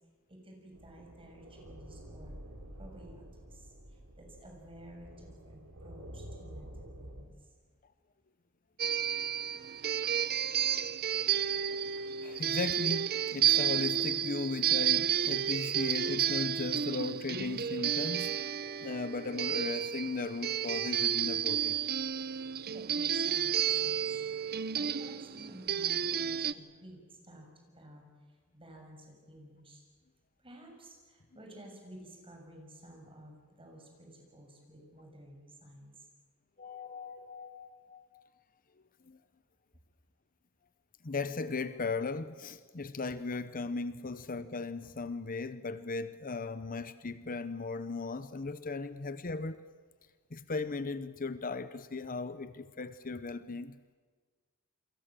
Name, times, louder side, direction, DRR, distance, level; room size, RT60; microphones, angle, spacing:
voice 1, 0.3-2.4 2.8-7.5 22.7-27.5 27.7-29.8 30.4-36.1, right 1 dB, 25° right, 7.1 m, -53 dB
sound 1, 0.7-7.2, right 1 dB, 80° right, 4.9 m, -49 dB
sound 2, 8.8-26.5, right 9 dB, 45° right, 0.7 m, -31 dB
voice 2, 12.2-18.4 18.8-21.8 36.6-38.3 39.1-39.2 41.0-49.6 50.3-53.8, left 3 dB, 40° left, 0.8 m, -37 dB
29.5 x 23.5 x 7.6 m
head